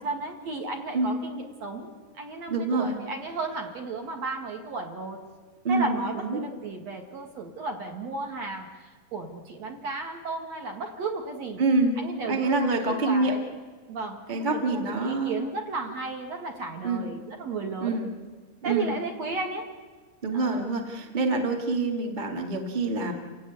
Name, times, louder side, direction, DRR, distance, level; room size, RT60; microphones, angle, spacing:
voice 1, 0.0-1.9 2.2-5.2 5.7-11.6 12.0-13.5 13.9-18.0 18.6-19.7 20.3-20.7, right 3 dB, 50° right, 3 dB, 2.7 m, -34 dB
voice 2, 2.5-3.0 5.6-6.4 11.6-11.9 12.2-13.3 14.3-15.4 16.8-17.1 17.8-18.1 18.6-18.9 20.2-23.1, right 3 dB, 20° right, 3 dB, 1.3 m, -26 dB
29.0 x 17.0 x 9.6 m, 1.4 s
omnidirectional pair, 4.7 m